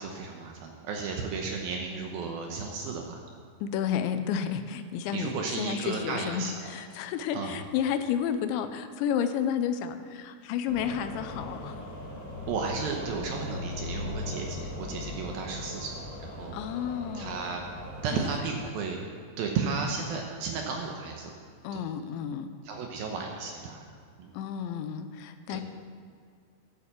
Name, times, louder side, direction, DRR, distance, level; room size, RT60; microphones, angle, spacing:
voice 1, 0.0-3.2 5.1-6.5 7.3-7.6 12.5-16.6 17.1-17.6 18.0-19.0 19.4-21.3 21.7-21.8 22.6-23.8 24.2-24.3 25.5-25.6, right 5 dB, 70° right, 1 dB, 2.4 m, -34 dB
voice 2, 3.6-11.8 16.5-17.4 18.1-18.3 21.6-22.5 24.3-25.6, left 8 dB, 90° left, 9 dB, 3.0 m, -31 dB
sound 1, 10.7-18.3, left 2 dB, 45° left, 1.4 m, -39 dB
11.5 x 8.5 x 7.3 m, 2.2 s
omnidirectional pair, 5.2 m